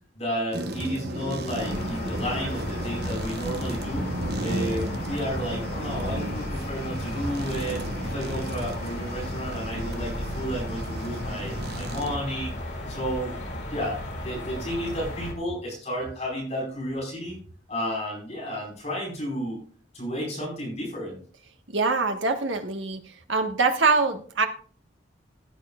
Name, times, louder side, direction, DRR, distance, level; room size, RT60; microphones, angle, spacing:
voice 1, 0.1-4.1 4.4-12.5 12.9-13.4 13.7-17.4 17.7-19.6 19.9-21.2, equal, 35° left, -2 dB, 4.8 m, -32 dB
sound 1, 0.5-12.2, right 1 dB, 55° right, 1.0 m, -34 dB
sound 2, 1.6-15.3, left 1 dB, 60° left, 2.5 m, -34 dB
voice 2, 21.7-23.0 23.3-24.5, right 4 dB, 85° right, 6 dB, 1.4 m, -23 dB
17.0 x 9.1 x 2.4 m, 0.42 s
head